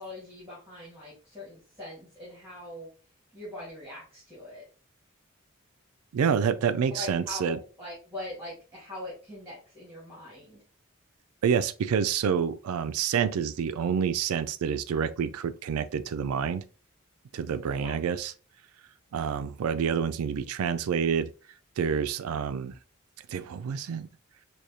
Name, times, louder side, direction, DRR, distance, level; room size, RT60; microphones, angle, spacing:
voice 1, 0.0-2.9 3.3-4.6 6.9-10.6 17.8-17.9, left 2 dB, 10° right, 1.6 m, -42 dB
voice 2, 6.1-7.6 11.4-16.6 17.3-18.3 19.1-21.3 21.8-22.8 23.3-24.1, right 7 dB, 90° right, 0.3 m, -28 dB
4.8 x 2.3 x 2.7 m
head